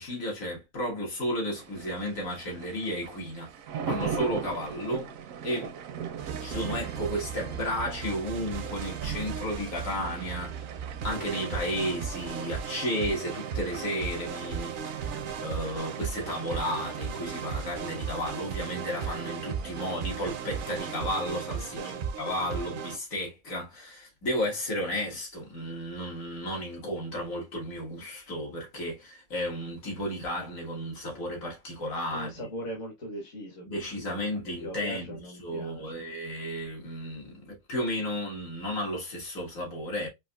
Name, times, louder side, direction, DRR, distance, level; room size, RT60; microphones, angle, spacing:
voice 1, 0.0-3.5 3.9-5.1 5.4-5.7 6.4-10.6 11.0-14.8 15.4-21.9 22.2-32.5 33.7-40.1, equal, 80° left, 1.9 m, -33 dB
sound 1, 1.5-21.0, right 7 dB, 80° right, 1.0 m, -41 dB
sound 2, 6.2-23.0, right 7 dB, 60° right, 0.5 m, -36 dB
voice 2, 21.7-22.0 32.1-33.7 34.0-36.0, equal, 65° left, 1.6 m, -40 dB
4.5 x 2.6 x 2.2 m
omnidirectional pair, 1.4 m